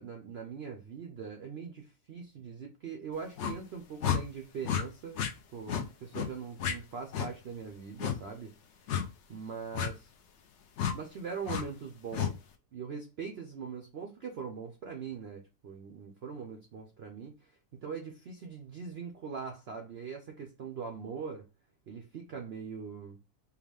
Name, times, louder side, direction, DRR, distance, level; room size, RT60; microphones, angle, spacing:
voice 1, 0.0-8.5 8.8-8.9 9.3-10.1 10.9-12.4 12.7-21.5 21.9-23.2, right 6 dB, 65° right, 0.6 m, -42 dB
sound 1, 3.4-3.6 4.0-4.2 4.6-4.8 5.1-5.3 5.7-5.8 6.1-6.3 6.6-6.7 7.1-7.3 8.0-8.2 8.9-9.1 9.7-9.9 10.8-10.9 11.5-11.6 12.1-12.3, left 8 dB, 65° left, 0.7 m, -31 dB
4.6 x 2.3 x 3.4 m
omnidirectional pair, 1.7 m